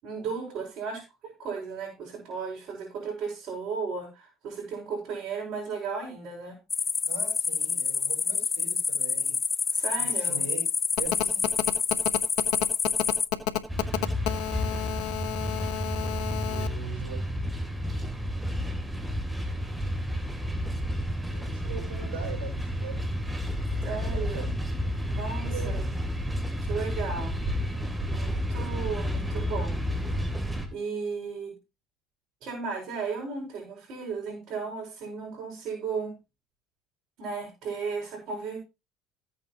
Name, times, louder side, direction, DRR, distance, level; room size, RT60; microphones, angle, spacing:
voice 1, 0.0-6.6 9.7-10.4 23.8-24.4 25.1-25.9 26.6-27.4 27.7-27.8 28.1-29.8 30.7-31.5 32.4-36.1 37.2-38.6, right 5 dB, 60° right, -3 dB, 5.9 m, -35 dB
sound 1, 6.7-13.3, left 5 dB, 35° left, 0.6 m, -28 dB
voice 2, 7.1-9.4 10.0-10.6 11.0-11.4 16.4-17.2 21.3-23.0 23.9-24.6 25.5-25.8, right 6 dB, 85° right, 3 dB, 5.0 m, -41 dB
Telephone, 11.0-16.7, left 13 dB, 75° left, 1.5 m, -29 dB
sound 2, 13.7-30.7, equal, 10° right, 3.2 m, -31 dB
15.0 x 8.6 x 3.1 m, 0.26 s
hypercardioid pair, 70°, 0 cm